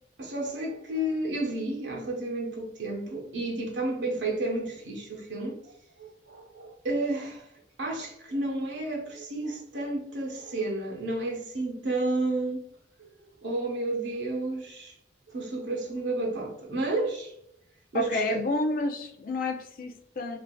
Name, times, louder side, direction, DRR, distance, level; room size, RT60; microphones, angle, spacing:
voice 1, 0.2-5.7 6.0-7.5 7.8-12.6 13.4-14.9 15.3-17.3 17.9-18.4, right 2 dB, 85° right, 0.8 m, -31 dB
voice 2, 17.9-20.4, left 2 dB, 50° left, 0.4 m, -29 dB
3.3 x 2.5 x 2.2 m
head